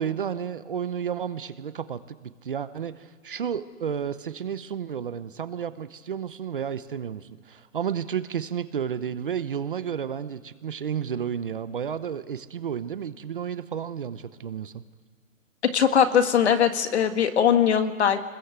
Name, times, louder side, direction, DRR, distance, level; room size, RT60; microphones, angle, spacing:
voice 1, 0.0-14.8, right 8 dB, 40° right, 13 dB, 0.8 m, -32 dB
voice 2, 15.7-18.2, left 8 dB, 50° left, 8 dB, 1.9 m, -21 dB
26.0 x 21.0 x 8.2 m, 1.5 s
hypercardioid pair, 175°, 42 cm